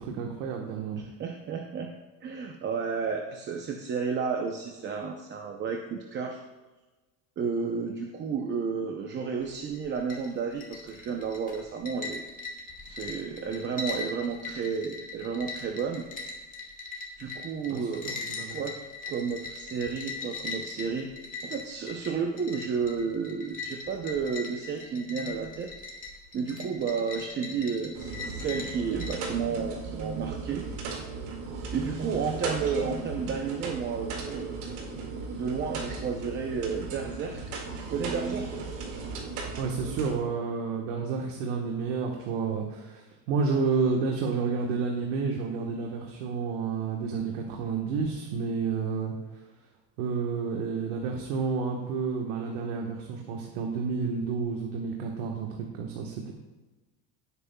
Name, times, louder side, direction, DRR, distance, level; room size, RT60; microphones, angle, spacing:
voice 1, 0.0-1.0 17.7-18.6 39.6-49.1 50.0-55.5 55.7-56.3, right 5 dB, 90° right, 1 dB, 1.3 m, -30 dB
voice 2, 1.0-1.9 2.2-6.4 7.4-12.2 12.8-16.1 17.2-18.1 18.5-18.7 19.1-21.1 21.4-25.7 26.3-30.6 31.7-34.6 35.3-37.4 37.8-38.5, right 5 dB, 30° right, 3 dB, 0.7 m, -32 dB
sound 1, 9.4-29.3, left 3 dB, 20° left, 1.5 m, -40 dB
sound 2, 27.9-40.1, right 4 dB, 70° right, 2.2 m, -37 dB
16.0 x 8.3 x 2.3 m, 1.2 s
cardioid pair, 165°, 38 cm